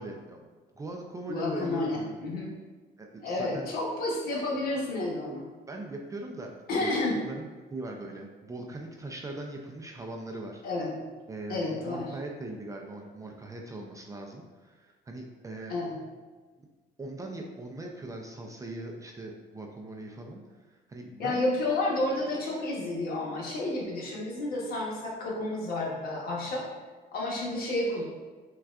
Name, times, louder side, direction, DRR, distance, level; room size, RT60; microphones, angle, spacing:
voice 1, 0.0-2.2 3.0-3.7 5.7-6.5 6.8-10.6 11.3-15.8 16.6-16.7 17.0-21.5 26.4-26.6, right 2 dB, 20° right, 1 dB, 0.4 m, -40 dB
voice 2, 1.3-2.5 3.2-5.4 6.7-7.1 10.6-11.0 11.5-12.1 15.7-15.9 21.2-26.7 27.1-28.0, left 2 dB, 65° left, -3 dB, 1.1 m, -30 dB
5.9 x 2.3 x 2.4 m, 1.4 s
cardioid pair, 110°, 17 cm